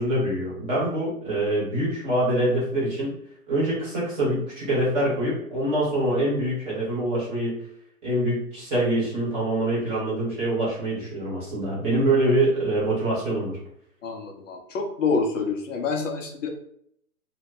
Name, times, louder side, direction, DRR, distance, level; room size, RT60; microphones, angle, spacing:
voice 1, 0.0-3.1 3.5-7.5 8.0-13.5, right 1 dB, 15° right, -7 dB, 0.9 m, -25 dB
voice 2, 14.0-16.5, left 4 dB, 55° left, 3 dB, 0.6 m, -27 dB
2.7 x 2.2 x 3.7 m, 0.70 s
hypercardioid pair, 150°, 45 cm